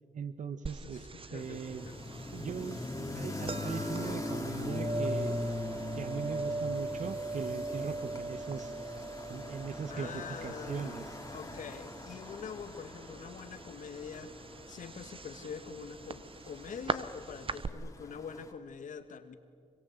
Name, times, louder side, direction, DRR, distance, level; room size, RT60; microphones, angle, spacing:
voice 1, 0.1-1.0 1.3-1.9 2.3-2.9 3.1-5.4 6.0-8.7 9.3-11.0, right 6 dB, 65° right, 12 dB, 1.4 m, -39 dB
sound 1, 0.7-17.7, right 3 dB, 40° right, 1.0 m, -41 dB
voice 2, 0.8-2.0 9.9-11.0 11.3-19.3, left 6 dB, 75° left, 9 dB, 1.8 m, -45 dB
sound 2, 1.4-18.5, left 2 dB, 25° left, 2.6 m, -42 dB
25.0 x 23.0 x 8.1 m, 2.3 s
cardioid pair, 60°, 13 cm